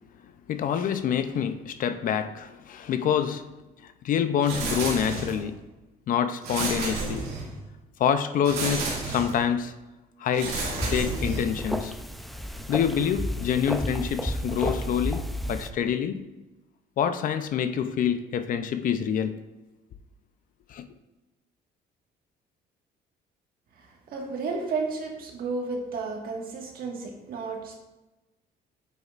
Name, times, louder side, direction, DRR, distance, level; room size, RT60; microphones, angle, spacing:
voice 1, 0.5-3.5 4.0-5.6 6.1-7.3 8.0-9.7 10.2-11.9 12.7-16.2 17.0-19.4 20.7-20.9, left 8 dB, 55° left, 0.5 m, -26 dB
sound 1, 4.4-5.5 6.4-7.6 8.4-9.5 10.3-11.6, right 3 dB, 90° right, 2.1 m, -31 dB
sound 2, 10.6-15.7, equal, ahead, 0.5 m, -32 dB
voice 2, 23.8-27.8, right 4 dB, 60° right, 1.6 m, -32 dB
8.5 x 6.6 x 2.5 m
cardioid pair, 110°, 17 cm